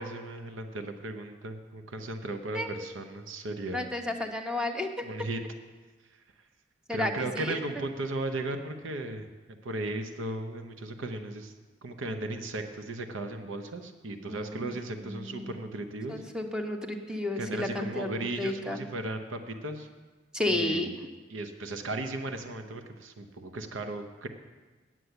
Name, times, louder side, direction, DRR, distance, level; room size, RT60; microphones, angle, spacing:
voice 1, 0.0-3.8 5.0-5.4 6.1-6.2 6.9-9.3 9.6-11.5 11.8-16.2 17.4-19.9 20.5-20.9 21.3-24.3, right 2 dB, 85° right, 7 dB, 0.8 m, -36 dB
voice 2, 2.5-2.9 3.7-5.0 6.9-7.6 14.3-14.6 15.0-15.6 16.1-18.1 18.4-18.8 20.3-20.9, left 1 dB, 5° right, 3 dB, 0.9 m, -32 dB
9.6 x 7.6 x 8.0 m, 1.3 s
head